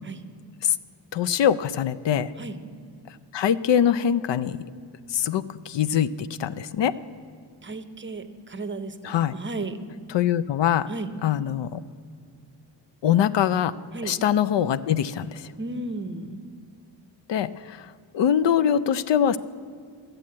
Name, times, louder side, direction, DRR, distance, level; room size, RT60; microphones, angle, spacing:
voice 1, 1.1-2.3 3.3-4.6 5.1-6.9 9.0-9.4 10.1-10.9 11.2-11.8 13.0-13.7 14.1-15.5 17.3-19.4, left 9 dB, 70° left, 16 dB, 0.5 m, -23 dB
voice 2, 7.6-9.8 10.9-11.1 13.9-14.2 15.6-16.4, right 2 dB, 25° right, 9 dB, 0.6 m, -34 dB
13.0 x 7.8 x 8.4 m, 2.3 s
wide cardioid pair, 165°, 44 cm